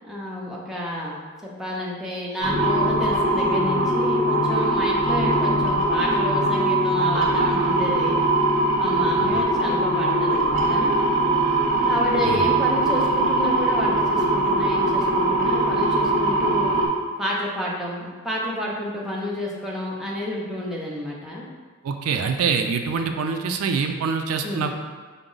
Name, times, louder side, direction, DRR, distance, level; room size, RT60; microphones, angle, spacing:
voice 1, 0.0-8.2 8.8-10.9 11.8-16.8 17.2-21.5 24.4-24.7, equal, ahead, -5 dB, 0.5 m, -30 dB
sound 1, 2.4-16.9, right 1 dB, 35° right, 0.7 m, -21 dB
voice 2, 21.8-24.8, right 5 dB, 90° right, 6 dB, 0.3 m, -25 dB
4.7 x 2.0 x 3.8 m, 1.4 s
head